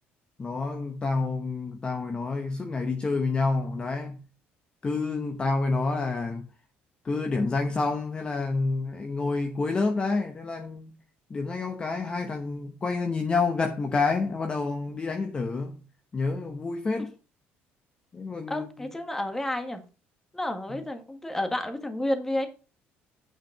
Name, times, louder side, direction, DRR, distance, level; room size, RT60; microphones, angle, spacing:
voice 1, 0.4-4.2 4.8-6.5 7.0-10.9 11.3-15.8 16.1-17.1 18.1-18.9 20.7-20.8, left 3 dB, 25° left, 1.0 m, -28 dB
voice 2, 18.5-19.8 20.3-22.5, left 1 dB, 10° left, 1.6 m, -30 dB
9.1 x 5.1 x 5.9 m
cardioid pair, 130°, 4 cm